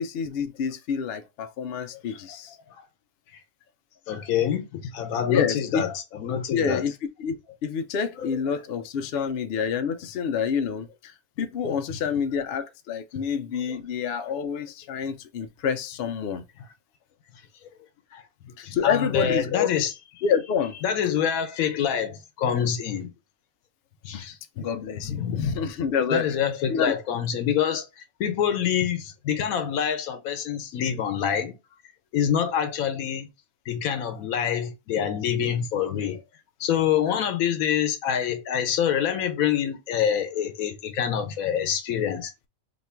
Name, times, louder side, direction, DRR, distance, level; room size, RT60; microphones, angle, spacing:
voice 1, 0.0-2.6 5.3-5.8 6.5-6.9 7.2-7.4 7.6-16.4 18.6-19.8 20.2-20.8 24.1-24.2 24.6-26.3 26.7-26.9, left 7 dB, 60° left, 0.6 m, -28 dB
voice 2, 4.1-6.8 8.2-8.3 11.9-12.0 13.7-13.8 18.1-19.9 20.8-23.1 24.0-24.6 25.0-25.7 26.1-27.9 28.2-31.5 32.1-33.3 33.7-36.2 36.6-42.3, left 8 dB, 85° left, 1.1 m, -26 dB
3.0 x 2.4 x 4.3 m
omnidirectional pair, 1.4 m